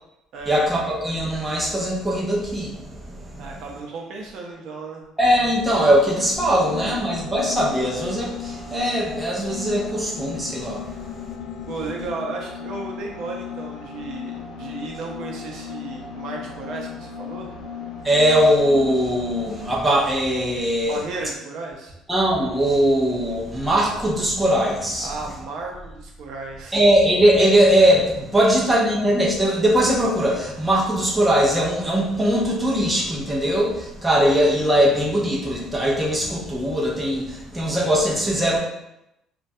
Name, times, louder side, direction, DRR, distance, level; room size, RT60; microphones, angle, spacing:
voice 1, 0.5-3.6 5.2-11.4 18.0-21.0 22.1-25.1 26.7-38.6, equal, 5° right, -4 dB, 0.5 m, -20 dB
voice 2, 3.4-5.0 10.9-11.0 11.7-17.5 20.8-21.9 25.0-26.8 28.5-28.6, right 3 dB, 55° right, 0 dB, 0.5 m, -34 dB
sound 1, 6.3-19.9, left 7 dB, 65° left, 0.6 m, -36 dB
3.1 x 2.2 x 2.6 m, 0.87 s
cardioid pair, 160°, 0 cm